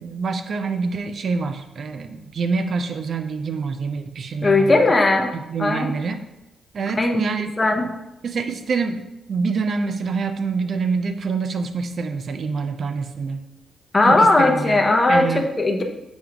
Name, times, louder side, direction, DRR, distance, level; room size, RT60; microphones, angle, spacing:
voice 1, 0.0-4.8 5.5-6.2 6.7-7.5 7.8-7.9 8.2-13.4 14.1-14.8 15.1-15.5, right 4 dB, 60° right, 8 dB, 0.4 m, -26 dB
voice 2, 4.4-5.3 5.6-5.9 7.0-7.2 7.6-7.9 13.9-15.8, left 2 dB, 30° left, 3 dB, 0.7 m, -17 dB
6.1 x 3.5 x 2.3 m, 0.91 s
supercardioid pair, 55°, 0 cm